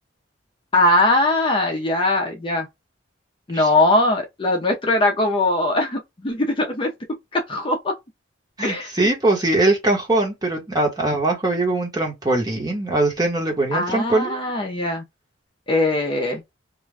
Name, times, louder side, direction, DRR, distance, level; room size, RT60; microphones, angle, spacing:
voice 1, 0.7-2.7 3.5-6.9 7.3-7.9 8.6-9.1 13.7-15.0 15.7-16.4, left 2 dB, 25° left, 0.5 m, -21 dB
voice 2, 8.6-14.4, right 2 dB, 20° right, 1.1 m, -21 dB
2.5 x 2.2 x 3.2 m
head